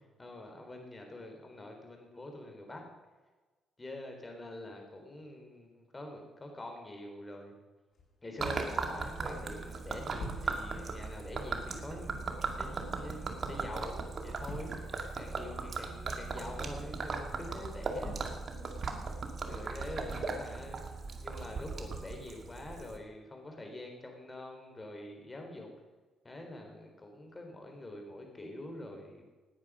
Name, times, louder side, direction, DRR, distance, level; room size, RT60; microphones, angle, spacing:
voice 1, 0.0-2.8 3.8-7.5 8.2-14.9 15.2-18.1 18.5-18.7 19.5-25.7 26.2-29.2, left 1 dB, 20° left, 3 dB, 4.1 m, -45 dB
sound 1, 7.9-19.6, left 2 dB, 50° left, 5.8 m, -52 dB
Gurgling / Liquid, 8.4-23.0, right 4 dB, 45° right, 2.2 m, -38 dB
18.5 x 9.6 x 6.4 m, 1.3 s
cardioid pair, 90°, 0 cm